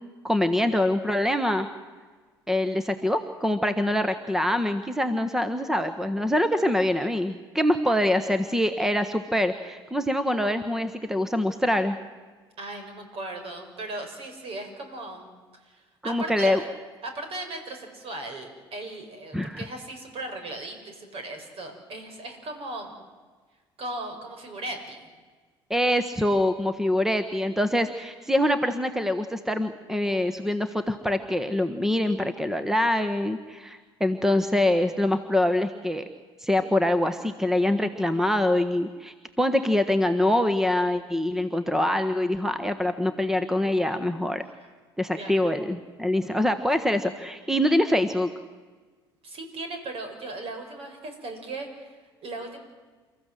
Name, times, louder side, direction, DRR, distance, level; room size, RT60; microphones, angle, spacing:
voice 1, 0.2-1.7 2.5-12.0 16.0-16.6 19.3-19.6 25.7-36.0 36.4-44.4 45.0-48.3, left 1 dB, 5° right, 10 dB, 1.4 m, -24 dB
voice 2, 12.6-15.3 15.6-16.7 17.0-22.9 23.8-25.1 45.2-45.5 46.7-46.8 49.2-52.6, right 2 dB, 50° right, 5 dB, 5.7 m, -37 dB
30.0 x 14.5 x 7.8 m, 1.4 s
hypercardioid pair, 60°, 13 cm